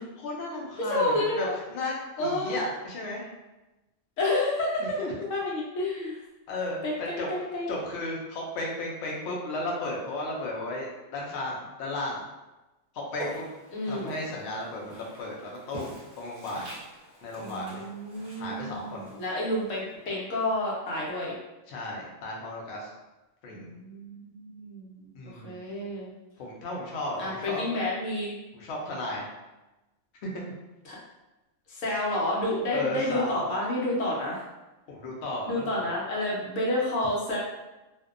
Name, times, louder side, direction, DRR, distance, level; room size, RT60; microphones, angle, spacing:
voice 1, 0.0-3.3 5.0-5.3 6.5-7.3 7.7-12.2 13.1-13.4 13.9-16.7 17.2-17.8 18.4-19.1 21.7-22.9 23.4-23.7 25.1-25.6 26.4-27.6 28.5-29.3 30.3-30.5 32.7-33.4 34.9-35.7, left 2 dB, 65° left, -3 dB, 0.8 m, -34 dB
voice 2, 0.8-1.6 2.2-2.6 4.2-5.0 5.3-6.2 6.8-7.7 13.7-14.1 17.4-21.3 23.5-26.1 27.2-28.3 30.8-31.0 31.7-34.5 35.4-37.4, left 1 dB, 80° left, -4 dB, 1.0 m, -30 dB
Walk footsteps, 13.1-20.2, right 2 dB, 45° right, 0.7 m, -45 dB
2.6 x 2.1 x 2.4 m, 1.0 s
omnidirectional pair, 1.3 m